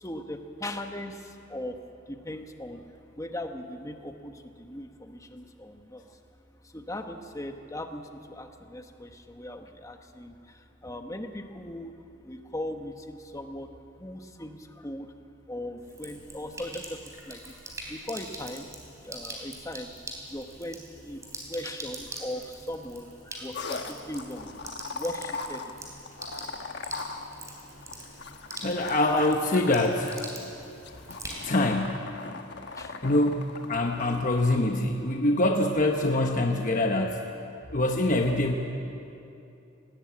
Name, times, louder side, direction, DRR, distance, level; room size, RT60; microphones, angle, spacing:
voice 1, 0.0-1.1 1.5-1.7 2.3-2.8 3.2-4.3 4.6-6.0 6.7-8.0 8.4-10.3 10.8-11.9 12.3-13.7 14.0-14.6 14.8-15.1 15.5-17.0 17.3-17.4 17.9-18.6 19.0-19.9 20.3-20.8 21.0-21.2 21.5-23.0 23.4-23.8 24.1-24.5 24.9-25.6 32.8-32.9, left 1 dB, 15° left, 5 dB, 1.2 m, -38 dB
Sink (filling or washing), 15.8-31.7, right 1 dB, 15° right, 3.6 m, -43 dB
sound 1, 23.5-34.4, left 4 dB, 60° left, 1.2 m, -40 dB
voice 2, 28.6-30.1 31.1-32.0 33.0-37.2 37.7-38.6, left 1 dB, 40° left, 2 dB, 1.0 m, -25 dB
20.0 x 17.5 x 8.7 m, 2.7 s
head